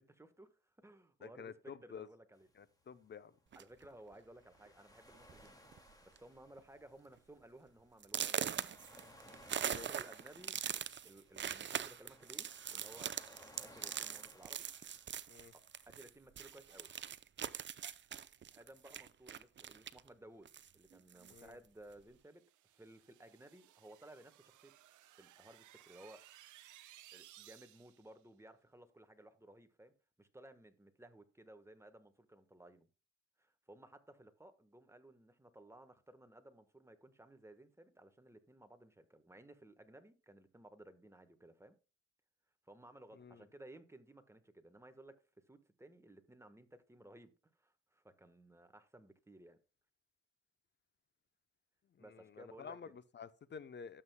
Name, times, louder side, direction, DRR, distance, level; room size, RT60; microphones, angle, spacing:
voice 1, 0.0-2.5 3.5-8.7 9.1-10.6 11.0-13.1 13.6-14.7 15.5-16.9 18.5-24.7 25.2-26.2 27.1-32.9 33.4-41.8 42.6-45.2 45.5-49.6 52.0-53.0, right 1 dB, 10° right, 1.3 m, -58 dB
voice 2, 1.2-2.1 2.6-3.3 9.6-9.9 15.3-15.5 21.3-21.6 43.2-43.4 52.1-54.0, left 6 dB, 35° left, 0.7 m, -50 dB
sound 1, 2.4-16.1, left 1 dB, 10° left, 2.2 m, -62 dB
sound 2, 3.5-3.8 4.7-4.8 5.1-5.4 5.7-6.2 6.6-6.7 7.2-7.3 8.0-16.1 16.4-20.1 20.5-21.5, right 9 dB, 40° right, 0.6 m, -42 dB
sound 3, 22.1-28.1, right 14 dB, 80° right, 0.8 m, -61 dB
12.5 x 7.7 x 2.2 m
cardioid pair, 90°, 30 cm